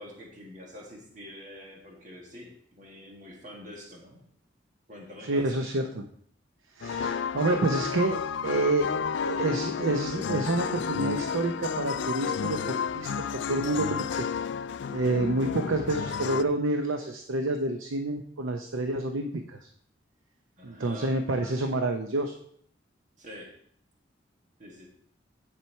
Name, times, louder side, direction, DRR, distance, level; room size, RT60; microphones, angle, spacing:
voice 1, 0.0-2.5 2.7-4.2 4.9-5.5 20.6-21.1 23.2-23.5 24.6-24.9, equal, 40° right, -1 dB, 1.7 m, -45 dB
voice 2, 5.3-6.1 6.8-8.9 9.2-14.2 14.9-19.6 20.6-22.3, right 2 dB, 90° right, 6 dB, 0.7 m, -28 dB
sound 1, 6.8-16.4, left 6 dB, 65° left, 0.3 m, -31 dB
10.0 x 4.4 x 4.5 m, 0.64 s
head